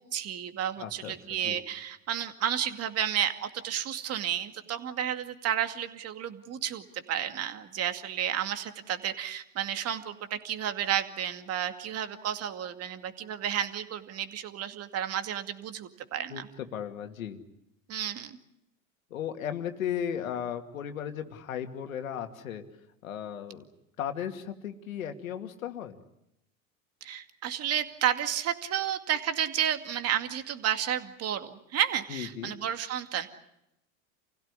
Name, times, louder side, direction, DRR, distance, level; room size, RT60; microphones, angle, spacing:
voice 1, 0.0-16.5 17.9-18.4 27.0-33.3, right 10 dB, 35° right, 8 dB, 2.4 m, -32 dB
voice 2, 0.8-1.6 16.3-17.4 19.1-22.6 23.0-23.6 24.0-26.0 32.1-32.5, left 9 dB, 85° left, 6 dB, 2.5 m, -36 dB
29.0 x 16.5 x 9.9 m, 0.84 s
hypercardioid pair, 105°, 40 cm